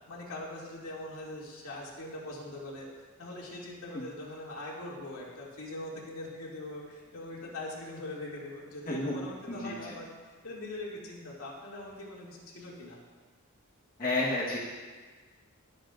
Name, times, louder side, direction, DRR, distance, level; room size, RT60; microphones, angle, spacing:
voice 1, 0.1-13.0, left 1 dB, 75° left, -4 dB, 2.5 m, -42 dB
voice 2, 8.9-9.2 9.6-9.7 14.0-14.6, left 2 dB, 40° left, -6 dB, 1.4 m, -30 dB
20.5 x 7.8 x 2.6 m, 1.4 s
head